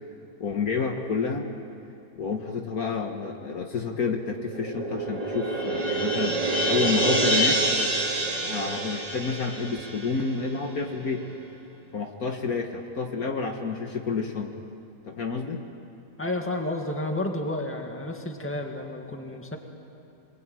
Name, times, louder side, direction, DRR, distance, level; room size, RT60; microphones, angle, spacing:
voice 1, 0.4-1.5 2.2-6.4 6.7-7.6 8.4-11.3 11.9-14.6 15.1-15.6, left 5 dB, 55° left, 3 dB, 1.8 m, -29 dB
sound 1, 4.4-11.0, right 2 dB, 80° right, 3.0 m, -27 dB
voice 2, 16.2-19.6, left 1 dB, 5° left, 2 dB, 2.0 m, -31 dB
27.0 x 21.5 x 9.1 m, 2.6 s
omnidirectional pair, 1.9 m